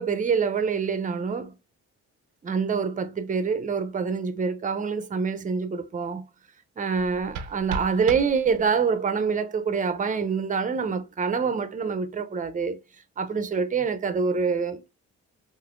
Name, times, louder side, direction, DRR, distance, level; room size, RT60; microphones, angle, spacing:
voice 1, 0.0-1.5 2.4-6.3 6.8-12.8 13.2-14.9, right 5 dB, 25° right, 0.6 m, -26 dB
sound 1, 6.9-8.9, right 5 dB, 90° right, 0.5 m, -37 dB
3.3 x 2.7 x 2.4 m
cardioid pair, 90°, 30 cm